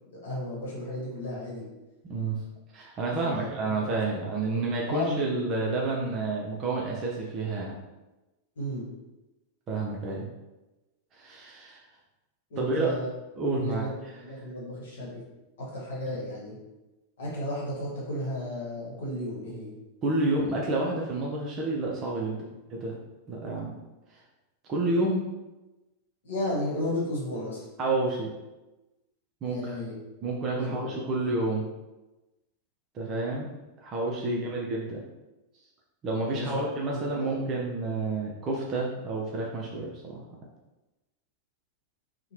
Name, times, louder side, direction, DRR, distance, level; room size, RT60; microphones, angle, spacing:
voice 1, 0.1-1.7 3.1-4.2 4.5-5.2 8.6-8.9 12.5-13.1 13.6-15.2 15.6-16.6 17.2-19.7 22.4-22.5 26.2-27.6 29.5-29.9 30.6-31.1 34.2-34.5 36.3-36.6 36.9-37.5, left 1 dB, 60° left, -5 dB, 1.0 m, -34 dB
voice 2, 2.1-2.4 2.7-7.8 9.7-10.3 11.1-11.8 12.6-12.9 13.4-13.9 20.0-22.4 22.7-23.0 23.3-23.7 24.7-25.2 27.8-28.3 29.4-29.8 30.2-31.6 32.9-33.5 33.8-35.0 36.0-40.2, right 2 dB, 30° right, -2 dB, 0.4 m, -29 dB
2.7 x 2.1 x 3.0 m, 1.1 s
figure-of-eight pair, 90°, 0 cm